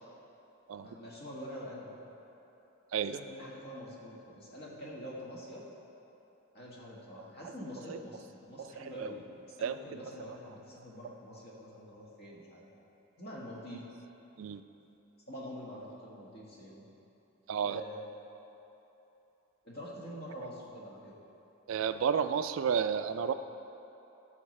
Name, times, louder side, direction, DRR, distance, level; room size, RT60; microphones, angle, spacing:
voice 1, 0.8-2.0 3.1-5.6 6.5-9.3 9.6-12.7 13.2-13.8 15.3-16.9 17.6-18.0 19.6-21.1, equal, 50° left, -5 dB, 1.6 m, -45 dB
voice 2, 7.4-8.0 8.6-9.2 9.6-10.4 11.1-11.2 14.4-14.6 17.5-17.8 21.7-23.3, right 7 dB, 70° right, 11 dB, 0.3 m, -33 dB
13.5 x 6.4 x 3.2 m, 3.0 s
head